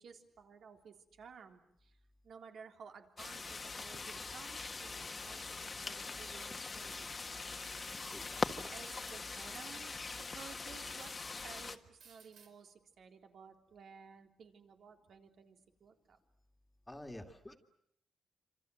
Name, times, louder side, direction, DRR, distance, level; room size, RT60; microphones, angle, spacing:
voice 1, 0.0-2.0 2.2-10.0 10.3-11.1 11.4-16.2, right 6 dB, 65° right, 4 dB, 3.5 m, -55 dB
sound 1, 3.2-11.8, left 4 dB, 30° left, 1.6 m, -42 dB
sound 2, 6.6-10.0 10.7-11.5 12.0-12.5, right 6 dB, 85° right, 4.7 m, -63 dB
voice 2, 8.1-8.7 16.9-17.6, left 1 dB, 10° left, 5 dB, 2.2 m, -50 dB
27.0 x 27.0 x 7.8 m, 0.73 s
wide cardioid pair, 130°, 0 cm